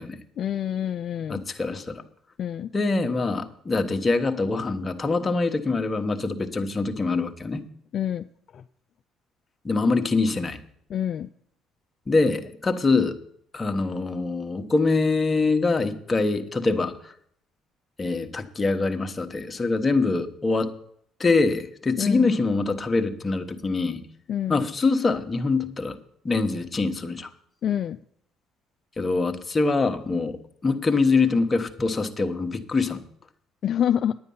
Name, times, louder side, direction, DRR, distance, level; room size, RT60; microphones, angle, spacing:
voice 1, 0.4-1.4 2.4-2.7 7.9-8.3 8.5-8.6 10.9-11.3 22.0-22.3 24.3-24.6 27.6-28.0 33.6-34.2, left 10 dB, 55° left, 9 dB, 0.3 m, -27 dB
voice 2, 1.3-2.0 2.7-7.6 9.6-10.6 12.1-13.2 13.5-17.1 18.0-20.7 21.2-24.0 24.5-26.0 26.2-27.3 29.0-33.0, left 3 dB, 30° left, 7 dB, 1.1 m, -24 dB
9.8 x 9.5 x 5.5 m, 0.66 s
supercardioid pair, 75°, 0 cm